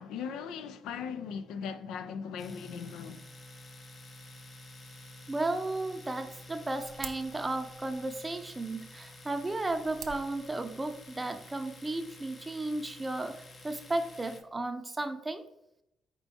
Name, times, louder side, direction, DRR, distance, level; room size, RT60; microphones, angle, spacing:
voice 1, 0.0-3.2, left 6 dB, 90° left, 0.3 m, -38 dB
Domestic sounds home sounds, 2.4-14.4, left 1 dB, 40° left, 0.6 m, -50 dB
voice 2, 5.3-15.4, right 2 dB, 20° right, 0.5 m, -34 dB
sound 1, 6.2-11.2, right 7 dB, 70° right, 0.4 m, -50 dB
4.5 x 4.3 x 2.7 m
cardioid pair, 90°, 0 cm